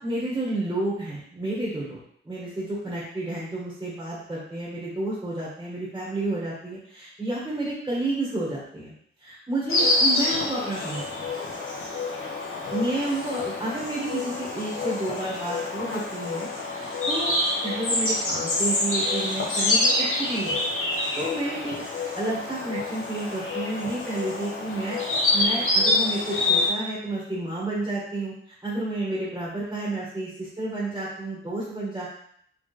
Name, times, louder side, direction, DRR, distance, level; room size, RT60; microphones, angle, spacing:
voice 1, 0.0-2.0 2.2-8.9 9.2-11.3 12.7-17.3 17.6-21.8 22.1-25.0 25.3-32.1, right 2 dB, 15° right, -6 dB, 1.4 m, -31 dB
Insect, 9.7-26.7, left 2 dB, 85° left, 1.2 m, -26 dB
4.3 x 3.5 x 3.3 m, 0.65 s
wide cardioid pair, 135°, 21 cm